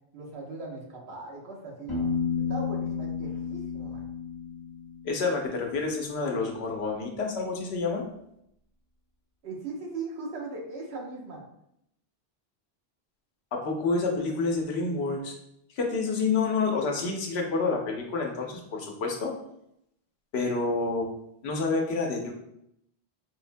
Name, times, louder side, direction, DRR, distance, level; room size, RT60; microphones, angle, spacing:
voice 1, 0.1-4.0 9.4-11.4, right 3 dB, 85° right, -1 dB, 1.1 m, -39 dB
Piano, 1.9-5.6, left 5 dB, 45° left, 1.2 m, -32 dB
voice 2, 5.0-8.0 13.5-15.3 15.7-19.3 20.3-21.1 21.4-22.3, left 4 dB, 85° left, 1 dB, 0.9 m, -28 dB
4.2 x 2.1 x 2.5 m, 0.78 s
omnidirectional pair, 1.0 m